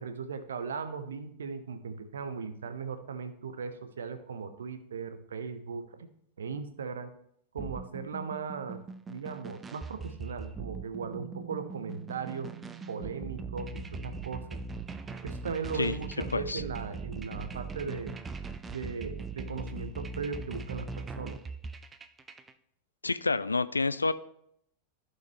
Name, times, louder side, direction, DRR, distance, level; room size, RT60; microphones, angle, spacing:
voice 1, 0.0-6.1 6.4-7.1 7.5-8.8 9.1-12.5 12.9-14.6 15.2-18.1 18.7-21.4, right 5 dB, 65° right, 10 dB, 0.8 m, -38 dB
sound 1, 7.6-22.5, right 3 dB, 15° right, 0.5 m, -41 dB
Bass guitar, 11.0-17.3, right 14 dB, 45° right, 1.1 m, -49 dB
voice 2, 23.0-24.1, left 3 dB, 80° left, 16 dB, 0.3 m, -28 dB
14.5 x 5.6 x 3.2 m, 0.72 s
figure-of-eight pair, 90°, 0 cm